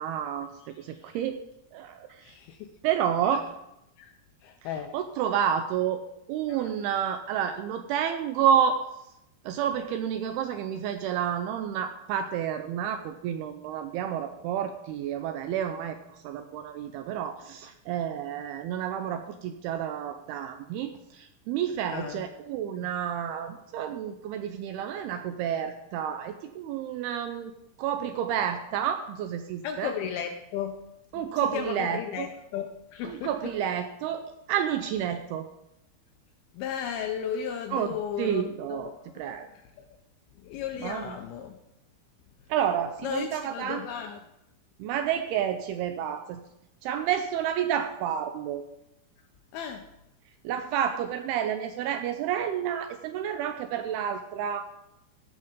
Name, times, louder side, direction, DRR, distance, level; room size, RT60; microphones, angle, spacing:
voice 1, 0.0-1.4 1.7-2.4 2.8-3.4 4.9-6.0 6.3-8.9 9.4-27.5 27.8-29.9 31.1-32.3 33.0-35.5 37.7-39.5 40.8-41.1 42.5-43.8 44.8-46.4 46.8-48.6 50.4-54.7, right 9 dB, 85° right, 8 dB, 2.3 m, -30 dB
voice 2, 0.9-1.2 2.2-2.8 3.3-3.4 4.0-4.1 4.4-4.9 6.5-6.7 21.9-22.2 29.6-30.9 31.1-33.3 36.5-39.9 40.4-41.5 43.0-44.2 49.5-49.9, left 8 dB, 85° left, 5 dB, 2.2 m, -35 dB
16.0 x 5.6 x 5.1 m, 0.85 s
omnidirectional pair, 5.0 m